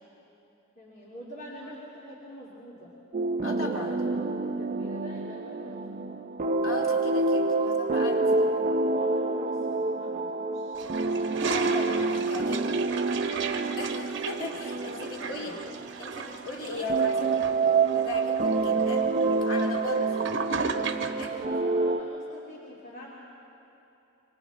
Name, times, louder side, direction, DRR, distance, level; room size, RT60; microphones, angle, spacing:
voice 1, 0.8-2.9 3.5-6.2 7.9-10.8 14.8-15.5 16.6-17.2 20.8-23.1, equal, 45° left, -6 dB, 2.7 m, -45 dB
sound 1, 3.1-16.4 16.9-22.0, right 3 dB, 40° right, 0.6 m, -27 dB
voice 2, 3.4-3.9 6.6-8.5 11.5-12.8 13.8-15.6 16.0-17.4 17.9-19.0 19.4-20.3 21.2-21.3, left 3 dB, 80° left, 1 dB, 2.4 m, -38 dB
Toilet flush, 10.8-21.4, right 4 dB, 60° right, 1.1 m, -36 dB
26.0 x 24.5 x 4.1 m, 2.9 s
head